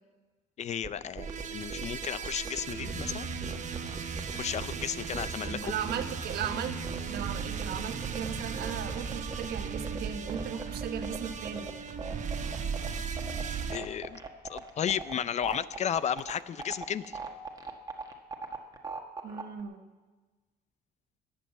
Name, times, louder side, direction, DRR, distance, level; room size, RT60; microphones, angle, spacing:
voice 1, 0.6-3.3 4.3-5.7 13.7-14.2 14.5-17.2, left 9 dB, 45° left, 17 dB, 0.5 m, -33 dB
sound 1, 0.8-19.6, right 4 dB, 20° right, 1.5 m, -40 dB
sound 2, 1.2-13.8, right 6 dB, 45° right, 1.2 m, -36 dB
voice 2, 5.5-6.8 7.0-11.7 19.2-19.8, right 8 dB, 70° right, 8 dB, 1.2 m, -37 dB
21.0 x 8.0 x 7.4 m, 1.3 s
cardioid pair, 110°, 17 cm